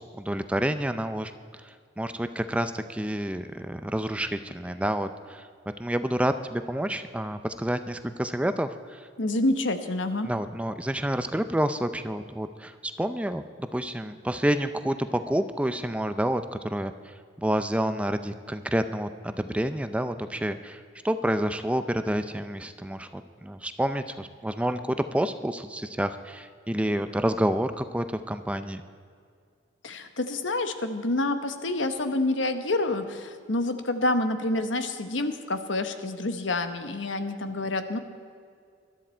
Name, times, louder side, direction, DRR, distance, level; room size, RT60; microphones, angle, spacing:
voice 1, 0.0-5.5 5.8-9.1 10.2-28.8, right 1 dB, 5° right, 10 dB, 0.5 m, -29 dB
voice 2, 9.2-10.3 29.8-38.0, left 2 dB, 80° left, 8 dB, 1.1 m, -28 dB
21.0 x 12.5 x 4.4 m, 2.2 s
head